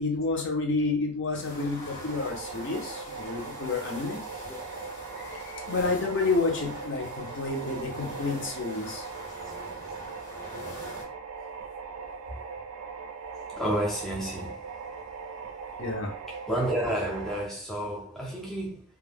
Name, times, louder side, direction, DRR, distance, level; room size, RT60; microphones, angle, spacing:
voice 1, 0.0-4.2 5.2-9.0 15.8-16.1, left 3 dB, 55° left, 0.7 m, -30 dB
sound 1, 1.3-11.0, left 1 dB, 70° left, 1.1 m, -43 dB
sound 2, 2.1-17.4, right 5 dB, 85° right, 0.4 m, -40 dB
voice 2, 13.6-14.6 16.3-18.8, right 1 dB, ahead, 0.4 m, -30 dB
2.3 x 2.1 x 3.3 m
head